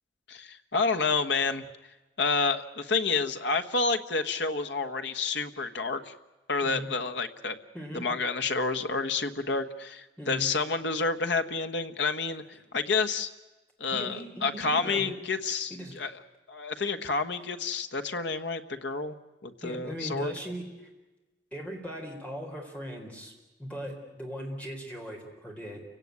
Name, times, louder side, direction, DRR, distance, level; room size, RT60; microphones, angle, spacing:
voice 1, 0.3-1.6 2.2-6.1 6.5-7.6 7.9-12.4 12.7-13.3 13.8-16.1 16.5-19.1 19.4-20.3, left 4 dB, 70° left, 8 dB, 1.3 m, -29 dB
voice 2, 10.2-10.5 13.9-15.2 15.7-16.0 19.6-20.9 21.5-23.3 23.6-25.8, equal, 10° left, 1 dB, 4.1 m, -39 dB
29.0 x 17.0 x 9.6 m, 1.2 s
head